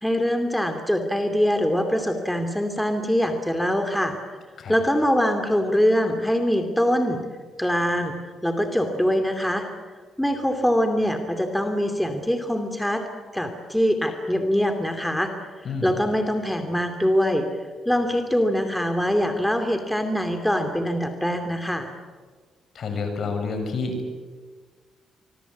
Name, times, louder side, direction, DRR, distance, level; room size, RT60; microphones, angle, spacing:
voice 1, 0.0-4.1 4.7-7.2 7.6-8.1 8.4-9.6 10.2-13.0 13.3-15.3 15.6-17.5 17.9-21.9, equal, 5° left, 6 dB, 2.7 m, -23 dB
voice 2, 22.7-24.0, left 4 dB, 55° left, 6 dB, 6.5 m, -29 dB
25.0 x 22.5 x 8.4 m, 1.5 s
cardioid pair, 90°, 0 cm